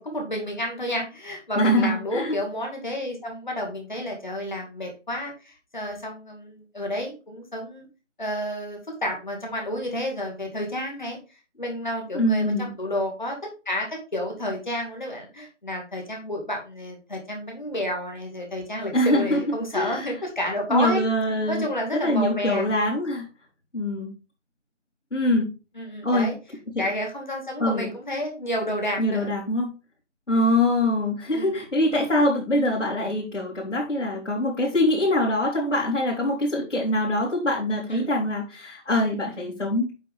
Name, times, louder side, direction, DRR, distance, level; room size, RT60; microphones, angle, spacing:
voice 1, 0.0-7.9 8.2-11.2 11.6-13.4 13.7-21.0 21.5-22.7 25.8-26.3 26.8-29.3 31.3-31.6 37.9-38.0, left 1 dB, 40° left, 1 dB, 2.3 m, -30 dB
voice 2, 1.5-2.3 12.1-12.7 18.9-19.4 19.7-20.1 20.7-21.6 21.9-23.3 23.7-24.1 25.1-25.5 26.0-26.3 26.8-26.9 27.6-27.9 29.0-29.7 30.3-39.9, left 1 dB, 75° left, -6 dB, 3.9 m, -23 dB
8.8 x 5.0 x 3.6 m, 0.31 s
figure-of-eight pair, 175°, 37 cm